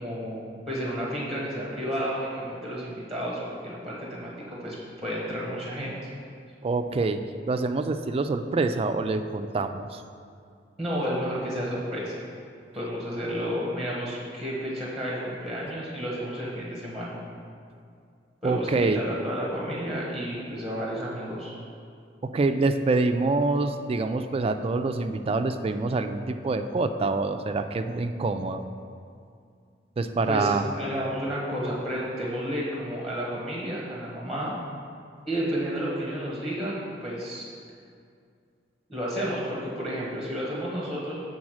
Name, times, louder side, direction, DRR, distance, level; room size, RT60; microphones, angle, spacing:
voice 1, 0.0-4.8 5.0-6.1 10.8-12.2 12.7-17.2 18.4-21.5 30.3-34.5 35.3-37.5 38.9-41.2, equal, ahead, -5 dB, 1.3 m, -31 dB
voice 2, 6.6-7.2 7.5-10.0 18.4-19.0 22.2-28.6 30.0-30.7, right 3 dB, 35° right, 8 dB, 0.3 m, -26 dB
7.3 x 3.9 x 6.3 m, 2.3 s
head